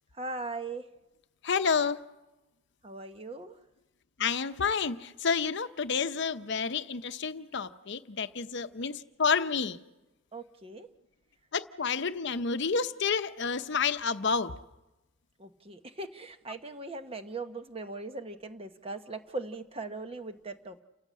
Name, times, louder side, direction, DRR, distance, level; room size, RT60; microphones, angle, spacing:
voice 1, 0.2-0.9 2.8-3.6 10.3-10.9 15.4-20.8, right 3 dB, 30° right, 1.0 m, -39 dB
voice 2, 1.4-2.0 4.2-9.8 11.5-14.6, left 5 dB, 60° left, 0.7 m, -29 dB
29.0 x 15.5 x 7.5 m
head